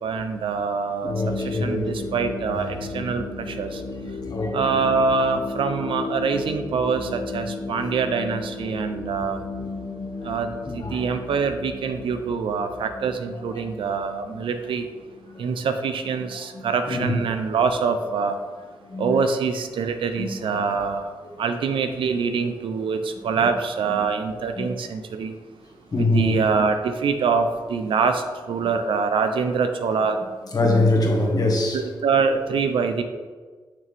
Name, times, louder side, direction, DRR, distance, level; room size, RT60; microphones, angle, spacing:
voice 1, 0.0-3.8 4.5-9.4 10.2-14.9 15.4-18.4 19.0-21.1 21.4-25.3 26.0-30.2 31.7-33.0, right 5 dB, 75° right, 7 dB, 0.7 m, -25 dB
sound 1, 1.0-15.4, left 3 dB, 75° left, 1.9 m, -35 dB
voice 2, 1.0-1.9 4.2-4.8 10.7-11.0 15.4-15.5 16.5-17.2 18.8-19.1 20.2-20.3 24.6-24.7 25.9-26.4 30.5-31.8, left 2 dB, 45° left, 0 dB, 1.7 m, -23 dB
6.6 x 6.3 x 3.5 m, 1.4 s
cardioid pair, 55°, 9 cm